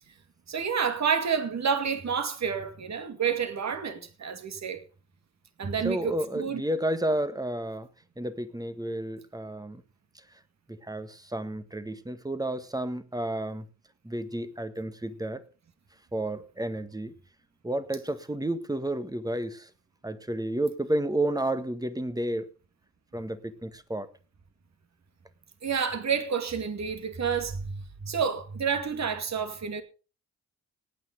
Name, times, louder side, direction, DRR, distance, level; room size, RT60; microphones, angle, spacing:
voice 1, 0.5-4.8 5.6-6.6 25.6-29.8, right 6 dB, 45° right, 2.4 m, -29 dB
voice 2, 5.8-7.9 8.2-9.8 10.7-13.7 14.0-15.4 16.1-17.1 17.6-19.7 20.0-22.5 23.1-24.1, right 1 dB, 10° right, 1.6 m, -31 dB
18.5 x 9.5 x 3.9 m
hypercardioid pair, 40°, 37 cm